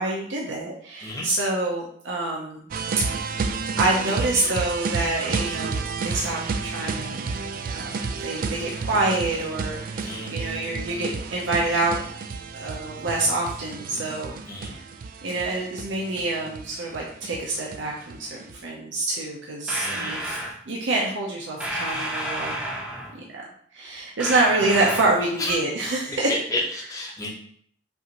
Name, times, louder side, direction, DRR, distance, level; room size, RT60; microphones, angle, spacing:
voice 1, 0.0-2.6 3.8-7.3 7.7-12.0 12.5-14.4 14.6-14.8 15.2-18.3 18.6-20.4 20.7-22.5 23.1-23.4 23.7-26.3, right 2 dB, 80° right, -2 dB, 0.6 m, -26 dB
sound 1, 2.7-18.6, right 4 dB, 50° right, 0.3 m, -31 dB
sound 2, 19.7-20.6 21.6-23.2 24.2-25.3, right 1 dB, 5° right, 0.6 m, -31 dB
voice 2, 19.8-20.2 25.4-25.5 26.1-27.3, left 1 dB, 20° left, -4 dB, 0.9 m, -31 dB
5.5 x 2.6 x 2.9 m, 0.62 s
head